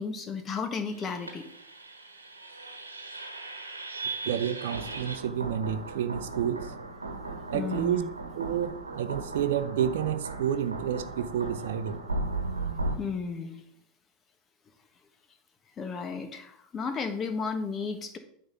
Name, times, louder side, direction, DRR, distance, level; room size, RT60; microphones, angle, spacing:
voice 1, 0.0-1.5 7.5-8.1 13.0-13.6 15.8-18.2, left 5 dB, 30° left, 7 dB, 1.4 m, -33 dB
sound 1, 0.9-13.0, right 2 dB, 90° right, 1.1 m, -37 dB
voice 2, 4.2-6.7 7.5-8.0 8.3-12.0, right 9 dB, 65° right, 11 dB, 0.6 m, -30 dB
9.4 x 3.6 x 7.0 m, 0.69 s
figure-of-eight pair, 85°, 0 cm